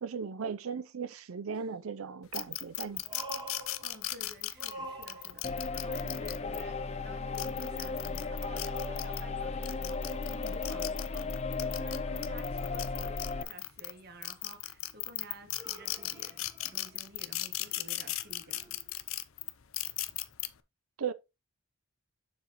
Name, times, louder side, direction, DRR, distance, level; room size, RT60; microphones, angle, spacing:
voice 1, 0.0-3.2 21.0-21.1, right 6 dB, 85° right, 0.5 m, -37 dB
sound 1, 1.6-1.7 3.0-4.3 4.5-5.7 8.7-11.2 15.5-17.2 17.6-19.0 20.1-20.2, right 2 dB, 20° right, 1.6 m, -48 dB
sound 2, 2.3-6.6 7.2-9.2 9.6-13.9 14.2-20.5, left 15 dB, 75° left, 0.7 m, -37 dB
voice 2, 3.8-18.8, right 1 dB, 50° right, 1.4 m, -51 dB
sound 3, 5.4-13.4, left 4 dB, 30° left, 0.5 m, -35 dB
7.3 x 5.8 x 3.0 m
head